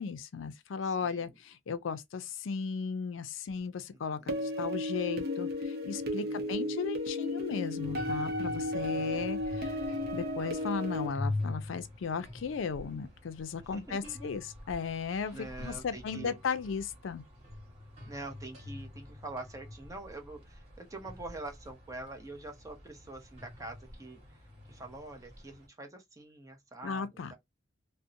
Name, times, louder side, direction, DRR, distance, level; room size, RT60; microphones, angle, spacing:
voice 1, 0.0-9.8 10.1-17.2 26.8-27.3, left 5 dB, 75° left, 0.4 m, -36 dB
voice 2, 0.8-1.3 3.9-4.5 6.2-6.7 8.7-9.3 13.6-14.3 15.3-16.4 18.1-24.4 24.7-27.4, right 2 dB, 15° right, 0.7 m, -45 dB
sound 1, 4.3-11.1, left 1 dB, 50° right, 0.6 m, -34 dB
sound 2, 7.8-25.7, left 2 dB, 35° right, 1.3 m, -44 dB
2.6 x 2.1 x 2.5 m
head